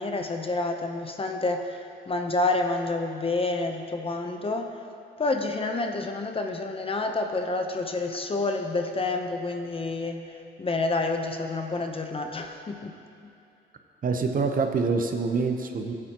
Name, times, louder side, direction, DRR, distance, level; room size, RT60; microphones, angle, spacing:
voice 1, 0.0-4.7 5.2-12.9, left 2 dB, 30° left, 4 dB, 0.8 m, -29 dB
voice 2, 14.0-15.9, right 4 dB, 45° right, 5 dB, 0.8 m, -26 dB
14.5 x 8.5 x 3.0 m, 2.6 s
cardioid pair, 90°, 20 cm